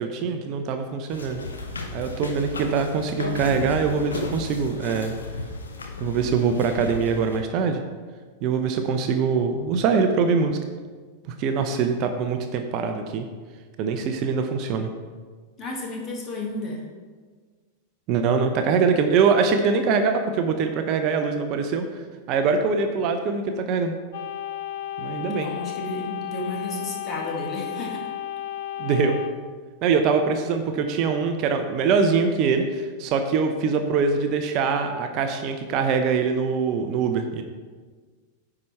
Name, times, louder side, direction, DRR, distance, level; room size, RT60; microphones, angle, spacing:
voice 1, 0.0-1.4 1.9-5.1 6.0-7.8 8.4-10.6 11.3-13.3 13.8-14.9 18.1-21.8 22.3-23.9 25.0-25.5 28.8-29.2 29.8-37.4, right 5 dB, 40° right, 6 dB, 0.6 m, -23 dB
sound 1, 1.1-7.4, left 2 dB, 70° left, 0.8 m, -34 dB
voice 2, 15.6-16.8 25.2-28.1, left 2 dB, 30° left, -1 dB, 1.8 m, -32 dB
sound 2, 24.1-29.3, left 11 dB, 55° left, 0.5 m, -33 dB
9.6 x 4.9 x 4.3 m, 1.5 s
figure-of-eight pair, 90°, 0 cm